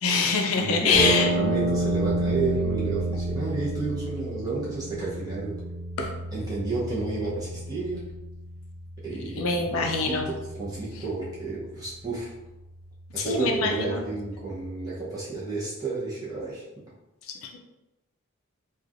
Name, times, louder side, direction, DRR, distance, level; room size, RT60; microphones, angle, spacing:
voice 1, 0.0-1.3 6.0-6.1 9.4-10.3 13.2-14.0 17.3-17.6, left 4 dB, 70° left, 2 dB, 0.4 m, -25 dB
voice 2, 0.6-5.6 6.3-8.1 9.0-12.3 13.1-16.6, right 3 dB, 15° right, -8 dB, 0.8 m, -31 dB
sound 1, 0.9-15.0, right 1 dB, 20° left, 0.7 m, -32 dB
3.1 x 2.4 x 2.5 m, 1.0 s
head